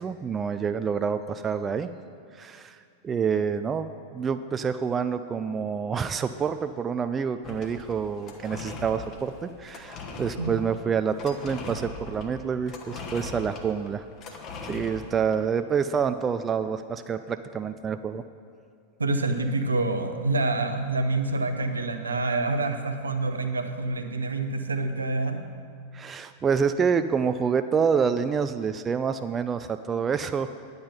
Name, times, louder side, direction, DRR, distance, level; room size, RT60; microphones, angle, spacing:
voice 1, 0.0-1.9 2.4-2.8 3.0-14.0 14.6-18.2 25.9-30.5, right 6 dB, 20° right, 10 dB, 0.3 m, -27 dB
sound 1, 7.4-15.4, left 4 dB, 35° left, 1.1 m, -40 dB
voice 2, 19.0-25.4, right 2 dB, 75° right, 7 dB, 0.7 m, -27 dB
10.0 x 8.0 x 5.5 m, 2.4 s
figure-of-eight pair, 90°, 0 cm